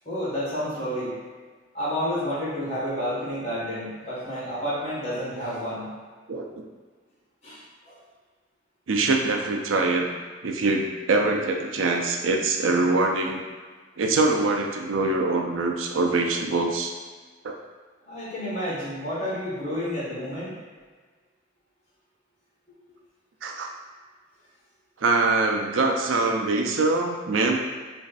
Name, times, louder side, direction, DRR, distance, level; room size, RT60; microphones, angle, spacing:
voice 1, 0.0-1.1 1.7-5.9 7.4-8.0 18.1-20.5, equal, 35° left, -8 dB, 1.5 m, -30 dB
voice 2, 8.9-10.1 10.4-13.4 14.0-16.9 17.4-17.6 23.4-23.7 25.0-27.6, right 3 dB, 90° right, 2 dB, 0.5 m, -23 dB
3.4 x 3.1 x 4.0 m, 1.4 s
head